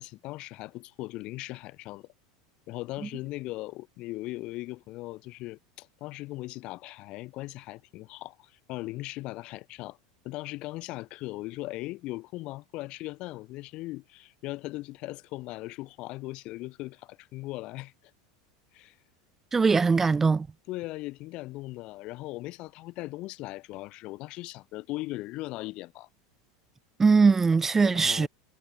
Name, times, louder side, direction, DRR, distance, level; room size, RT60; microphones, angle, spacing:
voice 1, 0.0-2.1 2.7-10.0 10.2-17.9 18.7-19.0 20.7-26.1 27.8-28.3, left 19 dB, 50° left, 2.8 m, -39 dB
voice 2, 19.5-20.5 27.0-28.3, right 4 dB, 15° right, 0.6 m, -21 dB
supercardioid pair, 120°, 2 cm